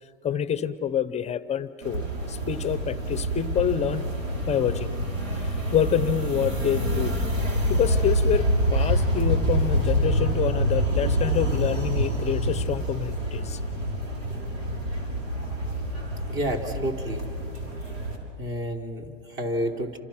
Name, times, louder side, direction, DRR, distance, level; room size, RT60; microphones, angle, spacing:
voice 1, 0.2-4.1 4.4-4.9 5.4-7.2 7.7-13.6, left 9 dB, 20° left, 15 dB, 0.7 m, -27 dB
sound 1, 1.8-18.2, equal, 90° right, 5.8 m, -26 dB
voice 2, 16.3-17.2 18.4-20.0, equal, 30° right, 4 dB, 3.3 m, -30 dB
29.0 x 26.0 x 6.0 m, 2.4 s
hypercardioid pair, 125°, 37 cm